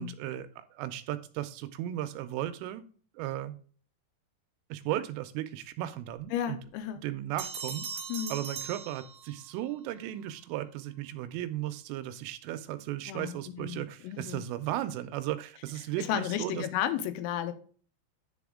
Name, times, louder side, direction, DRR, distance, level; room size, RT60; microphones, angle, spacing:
voice 1, 0.0-2.9 3.1-3.6 4.7-6.6 7.0-7.9 8.3-16.7, right 13 dB, 85° right, 11 dB, 3.0 m, -36 dB
voice 2, 6.3-7.0 8.1-8.4 13.1-14.4 16.0-17.5, left 10 dB, 85° left, 9 dB, 3.5 m, -33 dB
sound 1, 7.4-9.6, right 6 dB, 60° right, 2.9 m, -40 dB
10.0 x 4.2 x 3.6 m, 0.43 s
omnidirectional pair, 5.9 m